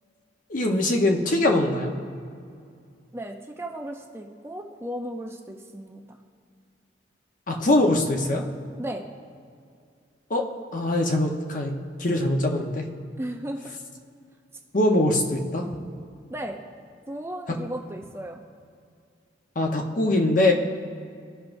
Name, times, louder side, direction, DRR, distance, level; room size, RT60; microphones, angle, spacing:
voice 1, 0.5-1.9 7.5-8.4 10.3-10.5 10.7-11.7 12.0-12.8 14.7-15.7 19.6-20.5, left 1 dB, 45° left, 2 dB, 0.9 m, -22 dB
voice 2, 3.1-6.2 8.8-9.0 13.2-13.7 16.3-16.6 17.1-18.4, right 1 dB, 15° right, 2 dB, 0.5 m, -35 dB
17.0 x 5.9 x 2.6 m, 2.3 s
head